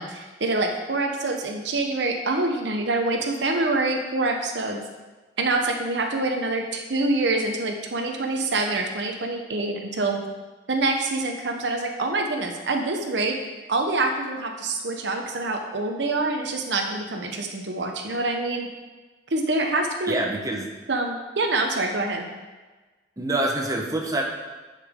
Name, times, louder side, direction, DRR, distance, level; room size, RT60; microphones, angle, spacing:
voice 1, 0.0-4.8 5.4-10.2 10.7-13.4 13.7-18.7 19.3-20.2 20.9-22.3, right 2 dB, 75° right, 3 dB, 0.9 m, -26 dB
voice 2, 20.1-20.7 23.2-24.2, right 1 dB, 20° right, 0 dB, 1.0 m, -26 dB
10.0 x 5.8 x 3.6 m, 1.3 s
head